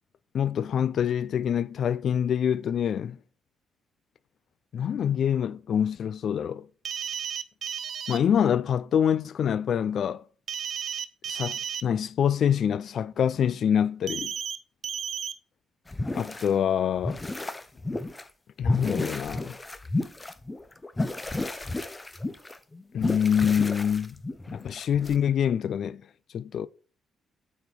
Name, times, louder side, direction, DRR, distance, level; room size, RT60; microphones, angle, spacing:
voice 1, 0.3-3.2 4.7-6.7 8.1-10.2 11.3-14.3 16.1-17.2 18.6-19.6 22.9-24.2 24.5-26.0 26.3-26.7, left 8 dB, 60° left, 0.4 m, -25 dB
sound 1, 6.9-8.2 10.5-11.8 14.1-14.6 14.8-15.3, right 7 dB, 55° right, 0.6 m, -33 dB
sound 2, 15.9-16.5 17.0-18.2 18.6-25.2, left 2 dB, 15° left, 0.7 m, -32 dB
8.9 x 4.3 x 5.3 m
cardioid pair, 90°, 0 cm